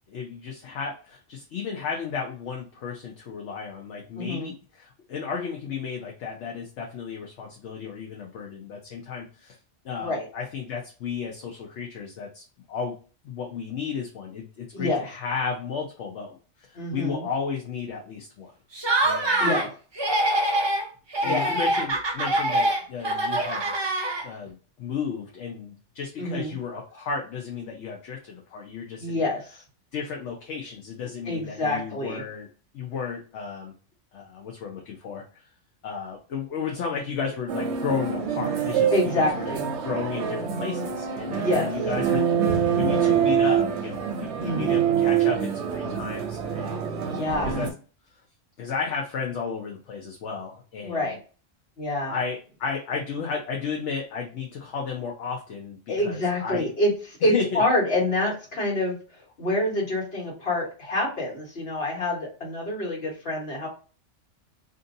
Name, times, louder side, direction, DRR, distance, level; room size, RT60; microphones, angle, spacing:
voice 1, 0.1-9.6 9.8-12.9 13.2-18.5 19.0-19.5 21.2-23.7 24.2-29.2 29.9-32.5 32.7-33.7 34.1-35.5 35.8-39.4 39.8-46.9 47.4-47.7 48.6-51.1 52.1-55.8 56.0-56.7 57.3-57.6, left 6 dB, 70° left, 0 dB, 0.9 m, -33 dB
voice 2, 4.1-4.5 10.0-10.3 14.7-15.0 16.7-17.2 19.4-19.7 21.2-21.6 26.2-26.5 29.0-29.6 31.2-32.2 38.9-39.6 41.4-41.7 44.4-44.8 47.1-47.5 50.8-51.2 51.8-52.1 55.9-59.0 59.4-63.7, left 1 dB, 55° left, -3 dB, 1.5 m, -26 dB
Laughter, 18.7-19.7 20.0-20.8 21.1-24.5, right 1 dB, 40° right, 0.3 m, -24 dB
sound 1, 37.5-47.7, right 7 dB, 70° right, 0.8 m, -25 dB
2.6 x 2.6 x 2.5 m, 0.37 s
omnidirectional pair, 1.3 m